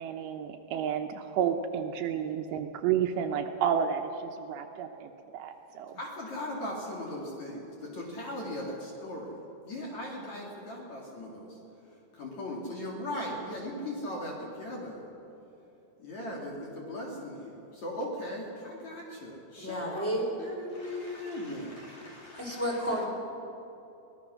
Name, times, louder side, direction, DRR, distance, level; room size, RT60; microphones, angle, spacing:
voice 1, 0.0-6.0, right 8 dB, 75° right, 5 dB, 2.9 m, -31 dB
voice 2, 6.0-9.4 9.6-11.5 12.1-15.0 16.0-20.1 20.4-22.6, left 1 dB, 45° left, -2 dB, 3.2 m, -38 dB
voice 3, 19.6-20.3 22.4-23.0, equal, 5° left, -3 dB, 3.7 m, -31 dB
23.0 x 18.5 x 6.3 m, 2.8 s
omnidirectional pair, 5.3 m